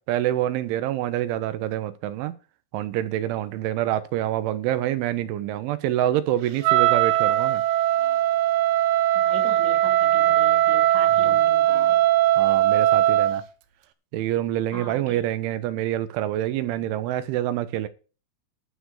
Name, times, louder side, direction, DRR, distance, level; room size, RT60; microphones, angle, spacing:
voice 1, 0.1-2.4 2.7-7.6 11.2-11.4 12.4-13.4 14.1-17.9, right 13 dB, 90° right, 3.5 m, -26 dB
Wind instrument woodwind instrument, 6.6-13.4, right 13 dB, 70° right, 2.5 m, -20 dB
voice 2, 9.1-12.0 14.7-15.3, equal, 20° left, 2.4 m, -40 dB
12.0 x 6.1 x 8.1 m
omnidirectional pair, 5.3 m